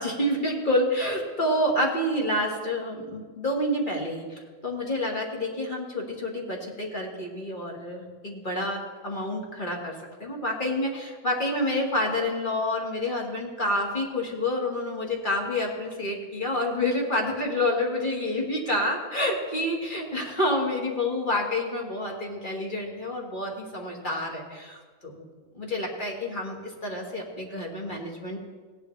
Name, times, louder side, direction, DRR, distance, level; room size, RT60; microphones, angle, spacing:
voice 1, 0.0-9.9 10.2-25.2 25.5-28.4, left 1 dB, 35° left, -1 dB, 1.9 m, -28 dB
17.0 x 10.5 x 3.3 m, 1.4 s
omnidirectional pair, 1.6 m